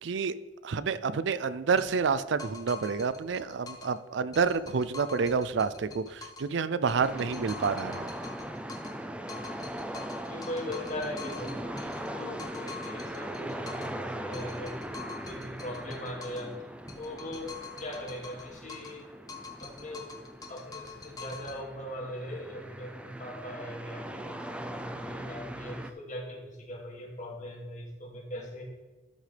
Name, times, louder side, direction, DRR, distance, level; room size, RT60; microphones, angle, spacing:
voice 1, 0.0-0.3 0.6-8.1, right 5 dB, 70° right, 15 dB, 0.4 m, -29 dB
sound 1, 1.8-4.0 4.3-6.5 6.9-9.0 9.3-14.0 14.3-16.5 16.9-19.0 19.3-21.6, left 4 dB, 20° left, 1.1 m, -46 dB
sound 2, 7.0-25.9, right 1 dB, 5° right, 0.4 m, -40 dB
voice 2, 10.3-16.5 16.9-17.5 17.8-19.1 19.6-20.1 20.5-28.6, left 1 dB, 40° left, -1 dB, 2.3 m, -40 dB
12.5 x 6.5 x 3.4 m, 1.3 s
head